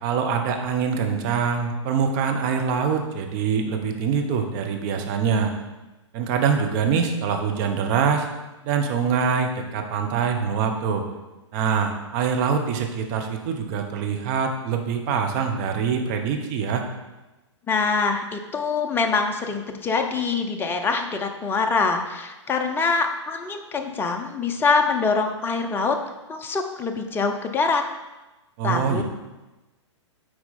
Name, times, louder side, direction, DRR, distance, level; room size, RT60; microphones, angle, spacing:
voice 1, 0.0-5.5 6.1-8.3 8.6-11.1 11.5-16.8 28.6-29.0, right 6 dB, 40° right, 4 dB, 1.1 m, -24 dB
voice 2, 17.7-26.0 26.3-27.8 28.6-29.0, left 4 dB, 15° left, 5 dB, 0.6 m, -24 dB
8.6 x 4.6 x 4.2 m, 1.1 s
figure-of-eight pair, 115°, 16 cm